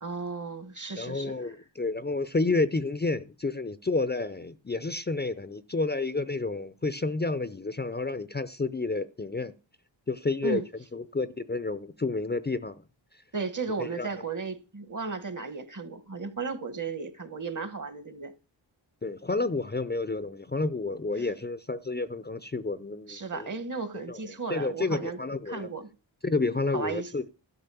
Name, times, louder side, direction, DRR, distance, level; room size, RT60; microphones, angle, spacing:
voice 1, 0.0-1.5 10.4-10.7 13.3-18.3 21.2-21.3 23.1-25.2 25.5-25.9 26.7-27.1, right 4 dB, 40° right, 1.3 m, -35 dB
voice 2, 1.0-9.5 10.1-10.6 10.9-12.7 13.8-14.1 19.0-23.5 24.1-24.2 24.5-25.7 26.2-27.3, left 3 dB, 20° left, 0.6 m, -30 dB
12.5 x 5.2 x 6.8 m
wide cardioid pair, 100°, 46 cm